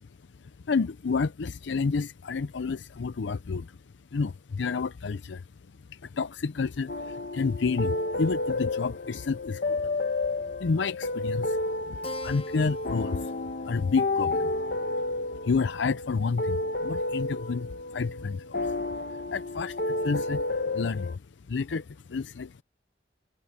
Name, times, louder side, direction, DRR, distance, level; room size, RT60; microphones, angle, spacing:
voice 1, 0.7-3.7 4.1-5.4 5.9-9.8 10.6-11.6 11.9-13.3 13.6-14.5 15.4-18.7 19.3-20.4 20.7-21.1 21.5-22.6, left 4 dB, 80° left, 0.5 m, -30 dB
sound 1, 6.9-21.2, left 2 dB, 55° left, 1.1 m, -31 dB
Keyboard (musical), 12.0-17.0, left 2 dB, 30° left, 0.9 m, -46 dB
head